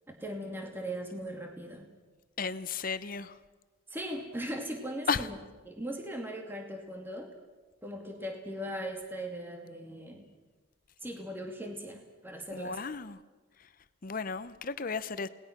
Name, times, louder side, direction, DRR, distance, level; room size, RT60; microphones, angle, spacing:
voice 1, 0.1-1.9 3.9-5.3 5.7-7.3 7.8-10.3 11.0-12.8, right 1 dB, 10° right, 2.5 m, -39 dB
voice 2, 2.4-3.4 5.1-5.3 12.5-13.2 13.6-13.7 14.0-15.3, left 5 dB, 45° left, 0.7 m, -34 dB
30.0 x 19.5 x 6.0 m
head